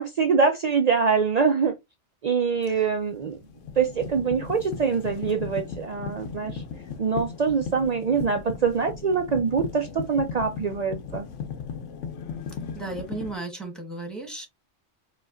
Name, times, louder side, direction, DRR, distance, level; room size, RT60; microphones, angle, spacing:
voice 1, 0.0-1.7 2.2-3.4 3.8-6.6 7.0-11.3, right 5 dB, 65° right, 0.4 m, -24 dB
sound 1, 2.7-2.9 3.4-13.4, left 6 dB, 85° left, 1.0 m, -37 dB
voice 2, 12.5-14.5, right 2 dB, ahead, 1.1 m, -35 dB
4.9 x 2.3 x 2.4 m
omnidirectional pair, 1.2 m